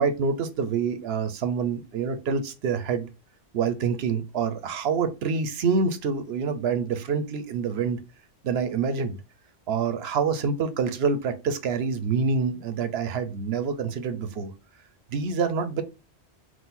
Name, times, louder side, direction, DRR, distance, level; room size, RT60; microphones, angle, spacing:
voice 1, 0.0-3.1 3.5-8.0 8.4-9.2 9.7-14.5 15.1-15.8, right 5 dB, 65° right, 0.9 m, -26 dB
3.8 x 2.5 x 4.1 m
omnidirectional pair, 1.2 m